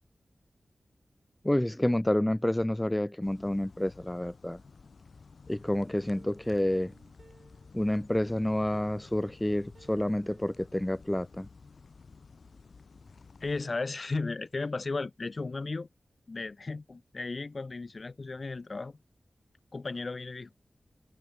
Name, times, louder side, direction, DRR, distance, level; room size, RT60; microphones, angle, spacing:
voice 1, 1.4-4.6 5.5-6.9 7.7-11.5, left 1 dB, 15° left, 0.3 m, -29 dB
sound 1, 3.2-13.6, left 4 dB, 70° left, 2.8 m, -53 dB
Plucked string instrument, 6.1-8.1 8.7-11.5 11.8-11.9 12.3-12.4, right 4 dB, 65° right, 1.4 m, -61 dB
voice 2, 13.4-15.9 16.3-19.0 19.7-20.5, left 3 dB, 55° left, 0.7 m, -35 dB
cardioid pair, 50°, 0 cm